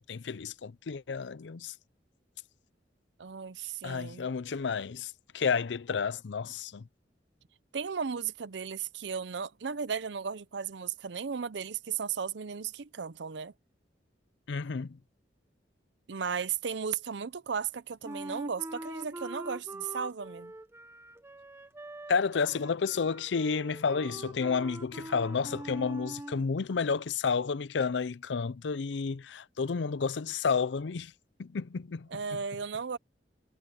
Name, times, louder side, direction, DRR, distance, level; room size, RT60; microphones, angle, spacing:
voice 1, 0.0-1.7 3.8-6.9 14.5-15.0 22.1-31.1 31.4-32.4, left 5 dB, 75° left, 0.5 m, -31 dB
voice 2, 3.2-4.3 7.7-13.5 16.1-20.5 32.1-33.0, right 6 dB, 70° right, 0.6 m, -35 dB
Wind instrument woodwind instrument, 18.0-26.5, right 1 dB, 15° right, 0.8 m, -43 dB
head